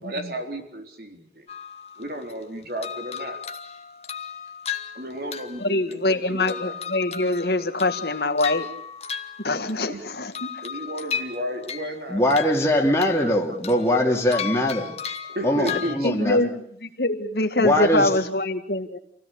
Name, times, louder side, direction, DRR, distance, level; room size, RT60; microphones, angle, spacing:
voice 1, 0.0-1.4 2.0-3.4 4.9-6.7 9.9-10.0 10.6-12.7 13.2-13.6 14.0-14.2 15.3-16.5, equal, 55° right, 5 dB, 3.9 m, -33 dB
sound 1, 1.5-2.4 2.8-6.2 6.5-9.9 10.3-12.0 12.3-13.3 13.6-15.9, left 7 dB, 35° left, 1.8 m, -35 dB
voice 2, 5.6-8.7 9.4-10.6 12.8-12.9 16.0-16.5 16.8-19.0, left 2 dB, 65° left, 8 dB, 1.9 m, -24 dB
voice 3, 12.1-14.9 15.4-16.4 17.6-18.1, left 1 dB, 15° left, 0 dB, 2.6 m, -21 dB
27.5 x 16.5 x 8.5 m, 0.67 s
head